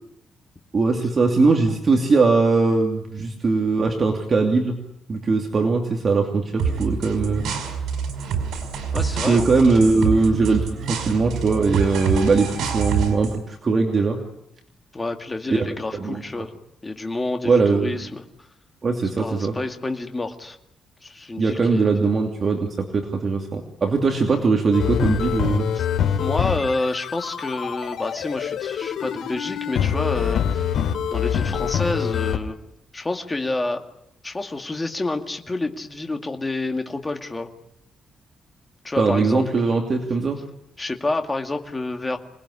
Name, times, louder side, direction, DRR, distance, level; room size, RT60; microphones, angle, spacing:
voice 1, 0.7-4.8 5.1-7.4 9.3-14.2 15.5-15.7 15.9-16.2 17.4-18.0 18.8-19.5 21.4-25.7 39.0-40.4, right 4 dB, 30° right, 2 dB, 2.7 m, -20 dB
sound 1, 6.6-13.4, right 6 dB, 85° right, 5.7 m, -26 dB
voice 2, 8.9-10.0 14.9-16.5 16.8-18.5 19.2-20.6 21.0-21.9 25.7-25.9 26.2-32.6 32.9-33.8 34.2-37.5 38.8-39.6 40.8-42.2, left 2 dB, 15° left, 5 dB, 2.2 m, -29 dB
sound 2, 24.7-32.4, left 8 dB, 75° left, 2.9 m, -25 dB
27.0 x 20.0 x 10.0 m, 0.79 s
cardioid pair, 155°, 0 cm